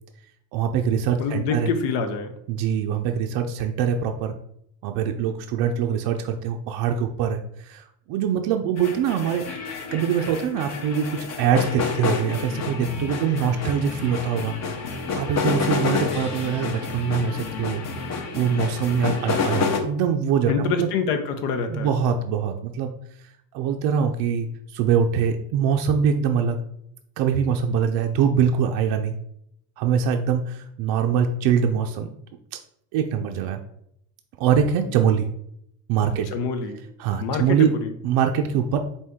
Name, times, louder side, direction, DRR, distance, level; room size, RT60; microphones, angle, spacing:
voice 1, 0.5-1.7 2.5-4.3 4.8-9.6 9.9-14.5 15.2-17.8 18.3-20.9 21.7-22.9 23.2-23.3 23.5-24.5 24.7-26.6 27.2-29.1 29.8-32.2 32.5-32.6 32.9-33.6 34.4-35.3 35.9-36.3 37.0-37.7 38.0-38.8, right 7 dB, 65° right, 4 dB, 0.5 m, -23 dB
voice 2, 1.2-2.3 16.1-16.2 20.5-21.9 36.0-36.8 37.2-37.9, left 5 dB, 80° left, 7 dB, 0.8 m, -26 dB
sound 1, 8.8-19.8, left 5 dB, 40° left, 0.7 m, -29 dB
4.4 x 2.7 x 3.5 m, 0.73 s
supercardioid pair, 105°, 43 cm